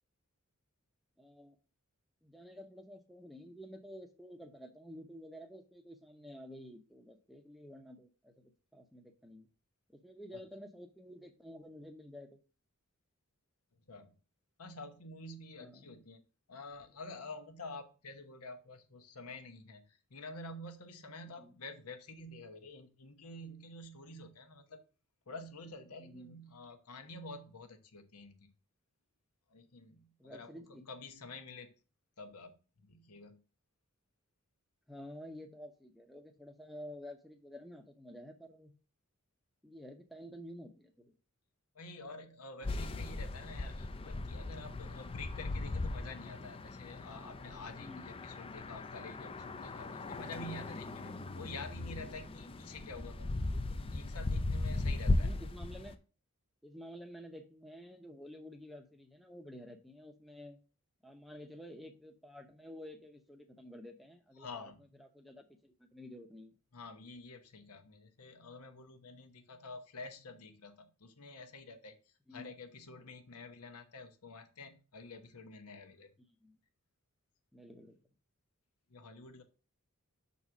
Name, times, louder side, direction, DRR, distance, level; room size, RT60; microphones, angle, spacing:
voice 1, 1.2-1.6 2.2-9.5 9.9-12.4 15.6-15.9 21.3-21.6 26.0-26.4 30.2-30.9 34.9-38.7 39.6-41.1 47.8-48.2 55.2-56.0 56.6-60.6 61.0-64.7 65.0-66.6 72.3-72.5 76.4-76.6 77.5-78.0, equal, ahead, 5 dB, 0.7 m, -51 dB
voice 2, 14.6-24.9 25.3-28.5 29.5-31.7 32.2-33.4 41.7-53.3 53.7-55.3 64.4-64.8 66.7-72.0 72.3-76.1 78.9-79.4, left 2 dB, 85° left, 7 dB, 1.1 m, -49 dB
sound 1, 42.6-55.9, left 2 dB, 25° left, 0.4 m, -38 dB
6.0 x 4.1 x 6.0 m, 0.35 s
head